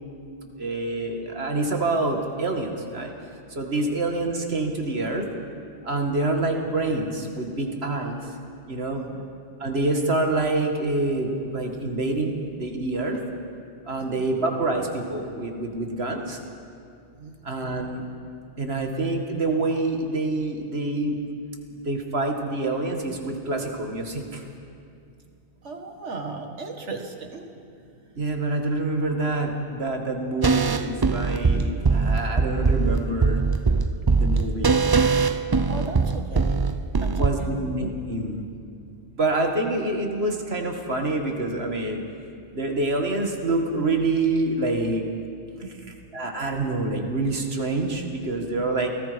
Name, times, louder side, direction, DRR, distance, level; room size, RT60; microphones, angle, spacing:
voice 1, 0.6-3.1 3.6-5.2 5.9-8.2 8.7-9.0 9.6-13.2 13.9-16.4 17.5-18.0 18.6-21.2 21.9-24.2 28.2-33.4 34.2-34.8 37.1-38.4 39.2-42.0 42.5-45.0 46.1-48.9, right 2 dB, 65° right, 3 dB, 2.3 m, -26 dB
voice 2, 25.6-27.5 35.7-36.6 37.0-37.1 37.4-37.6 45.6-45.9, right 3 dB, 85° right, 4 dB, 2.2 m, -36 dB
sound 1, 30.4-37.3, right 4 dB, 30° right, 0.5 m, -22 dB
28.5 x 18.5 x 5.3 m, 2.4 s
omnidirectional pair, 1.2 m